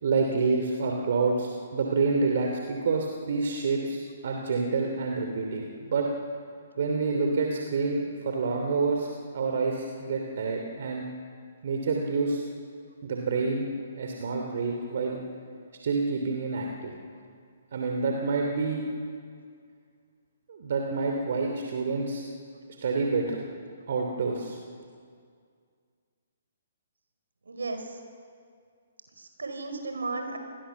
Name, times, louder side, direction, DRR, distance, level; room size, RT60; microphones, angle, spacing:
voice 1, 0.0-6.1 6.8-9.1 9.3-11.1 11.6-12.4 13.0-13.7 13.9-15.2 15.8-16.9 17.7-18.8 20.5-22.2 22.8-23.4 23.9-24.6, right 4 dB, 55° right, 2 dB, 3.0 m, -28 dB
voice 2, 27.5-28.0 29.2-30.4, right 3 dB, 70° right, 5 dB, 4.9 m, -34 dB
29.0 x 21.0 x 7.2 m, 2.2 s
figure-of-eight pair, 125°, 0 cm